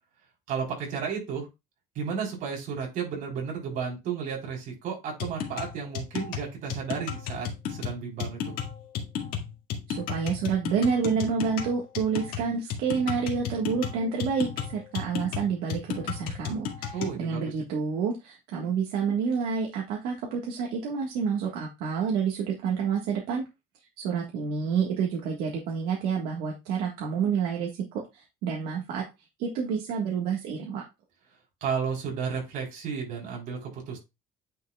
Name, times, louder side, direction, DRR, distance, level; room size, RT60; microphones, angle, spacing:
voice 1, 0.5-1.5 2.0-8.5 16.9-17.5 31.6-34.0, right 6 dB, 60° right, -1 dB, 3.7 m, -33 dB
sound 1, 5.2-17.2, left 8 dB, 70° left, 1.8 m, -34 dB
voice 2, 9.9-23.4 24.0-29.0 29.4-30.8, right 6 dB, 90° right, -1 dB, 1.5 m, -29 dB
9.3 x 5.7 x 2.3 m, 0.24 s
cardioid pair, 165°, 16 cm